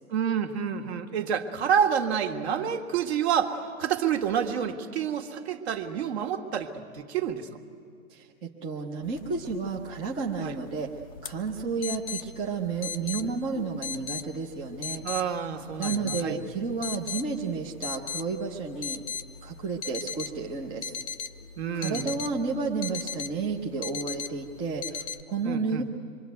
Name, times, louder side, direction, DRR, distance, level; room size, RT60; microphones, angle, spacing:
voice 1, 0.1-7.5 10.4-10.6 15.0-16.4 21.6-22.1 25.5-25.8, right 8 dB, 45° right, 6 dB, 1.9 m, -28 dB
voice 2, 8.1-10.9 11.2-15.0 15.8-19.0 19.4-20.9 21.7-25.8, right 4 dB, 10° right, 0 dB, 0.7 m, -31 dB
sound 1, 9.1-25.2, left 7 dB, 25° left, 0.6 m, -39 dB
26.0 x 23.0 x 9.3 m, 2.3 s
hypercardioid pair, 140°, 44 cm